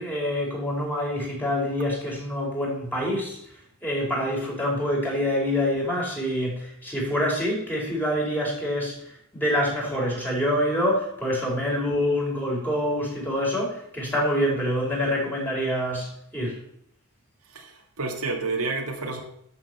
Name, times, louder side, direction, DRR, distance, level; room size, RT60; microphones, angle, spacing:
voice 1, 0.0-16.6, equal, 10° left, -3 dB, 5.2 m, -26 dB
voice 2, 17.5-19.2, right 3 dB, 70° right, 2 dB, 2.1 m, -30 dB
12.5 x 6.9 x 6.8 m, 0.72 s
head